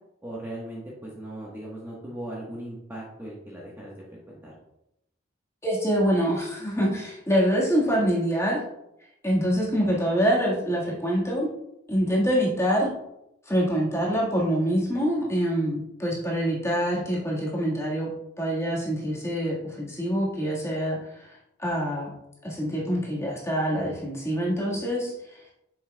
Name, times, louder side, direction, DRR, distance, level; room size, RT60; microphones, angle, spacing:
voice 1, 0.2-3.9 4.3-4.5 16.3-16.6, right 1 dB, 10° right, -5 dB, 1.2 m, -38 dB
voice 2, 5.6-8.6 9.2-11.5 11.9-12.9 13.5-18.1 18.4-21.0 21.3-22.1 22.4-25.4, equal, 15° left, -4 dB, 1.6 m, -25 dB
8.5 x 6.4 x 2.2 m, 0.85 s
head